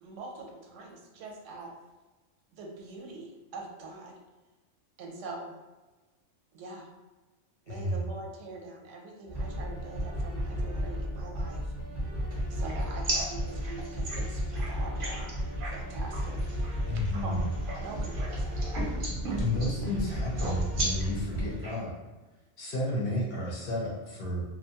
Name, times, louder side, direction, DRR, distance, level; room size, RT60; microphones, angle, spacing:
voice 1, 0.0-1.7 2.5-4.2 5.0-5.5 6.5-6.9 7.7-11.7 12.5-13.1 13.6-14.4 14.7-15.4 15.7-16.4 17.2-17.3 17.8-18.6, right 3 dB, 85° right, 0 dB, 1.0 m, -43 dB
voice 2, 7.7-8.0 16.9-17.5 19.4-21.9 22.6-24.4, left 1 dB, 55° left, -4 dB, 0.8 m, -31 dB
sound 1, 9.3-21.5, equal, 25° left, 0.8 m, -33 dB
voice 3, 12.3-12.8 13.1-17.2 17.7-19.9 20.4-21.2 21.6-21.8, right 2 dB, 55° right, -3 dB, 0.6 m, -37 dB
2.6 x 2.1 x 2.8 m, 1.2 s
omnidirectional pair, 1.3 m